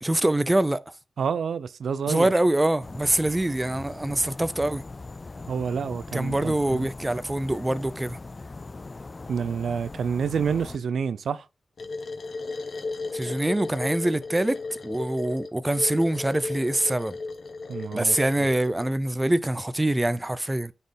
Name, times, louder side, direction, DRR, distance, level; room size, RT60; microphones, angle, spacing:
voice 1, 0.0-0.8 2.1-4.8 6.1-8.2 13.1-17.2 17.9-20.7, right 1 dB, 15° right, 0.5 m, -24 dB
voice 2, 1.2-2.3 5.5-6.9 9.3-11.5 17.7-18.2, right 6 dB, 80° right, 0.4 m, -28 dB
sound 1, 2.8-10.8, left 3 dB, 35° left, 0.3 m, -40 dB
sound 2, 11.8-18.9, left 3 dB, 65° left, 1.2 m, -35 dB
9.5 x 4.3 x 3.4 m
cardioid pair, 65°, 0 cm